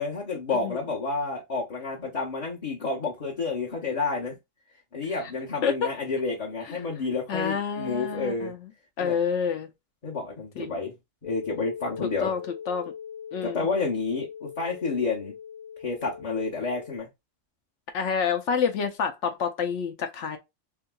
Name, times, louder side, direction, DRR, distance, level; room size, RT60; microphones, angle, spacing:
voice 1, 0.0-4.4 4.9-8.5 9.0-9.2 10.0-10.9 11.2-12.3 13.4-15.3 15.8-17.1, left 4 dB, 35° left, 0.9 m, -30 dB
voice 2, 7.3-8.6 9.0-9.7 10.6-10.8 12.0-12.4 12.7-12.9 13.3-13.7 17.9-20.4, left 6 dB, 70° left, 1.0 m, -28 dB
sound 1, 11.2-17.0, left 8 dB, 10° right, 0.6 m, -41 dB
3.5 x 2.9 x 2.2 m
omnidirectional pair, 1.3 m